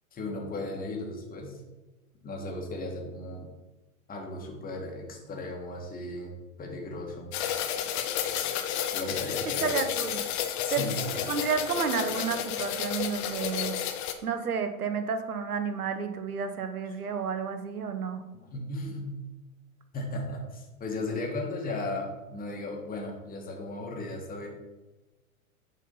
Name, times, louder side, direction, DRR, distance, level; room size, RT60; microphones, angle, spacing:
voice 1, 0.1-1.6 2.2-3.5 4.1-6.3 6.6-7.3 8.9-9.8 10.6-11.3 18.5-19.2 19.9-24.5, left 2 dB, 20° left, 0 dB, 1.8 m, -36 dB
sound 1, 7.3-14.1, left 10 dB, 45° left, 0.9 m, -31 dB
voice 2, 9.6-10.2 10.7-10.9 11.3-13.8 14.2-18.2, right 6 dB, 85° right, 8 dB, 1.0 m, -31 dB
7.3 x 4.2 x 5.5 m, 1.1 s
hypercardioid pair, 105°, 43 cm